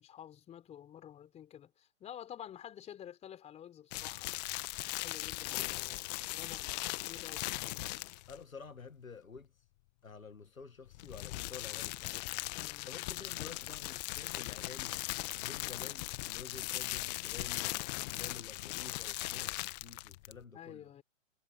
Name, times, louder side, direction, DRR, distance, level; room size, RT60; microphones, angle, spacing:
voice 1, 0.0-4.4 4.8-7.5 12.5-12.9 20.5-21.0, left 10 dB, 15° left, 4.0 m, -50 dB
sound 1, 3.9-8.4 10.9-20.4, left 21 dB, 30° left, 1.4 m, -39 dB
voice 2, 8.3-9.5 10.0-12.2 12.8-15.0 15.4-20.9, left 5 dB, 90° left, 2.0 m, -50 dB
hypercardioid pair, 130°, 40 cm